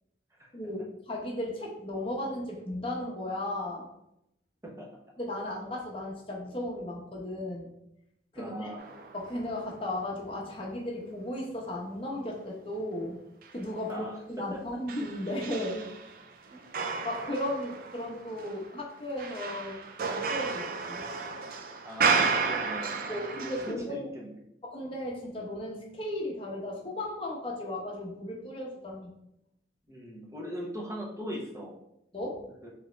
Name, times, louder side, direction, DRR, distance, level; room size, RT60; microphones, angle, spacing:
voice 1, 0.5-3.9 5.2-7.7 8.3-8.8 9.1-13.2 13.5-15.9 16.5-16.6 17.0-21.0 23.1-24.0 24.6-29.1 32.1-32.4, left 1 dB, 30° left, -3 dB, 0.8 m, -35 dB
voice 2, 8.3-8.8 13.9-14.8 21.8-24.3 29.9-31.7 32.6-32.7, equal, 15° right, -3 dB, 0.8 m, -40 dB
sound 1, 8.8-9.6 10.1-10.2 13.4-13.5 14.9-23.7, right 4 dB, 50° right, 0.4 m, -32 dB
3.7 x 3.0 x 3.2 m, 0.80 s
head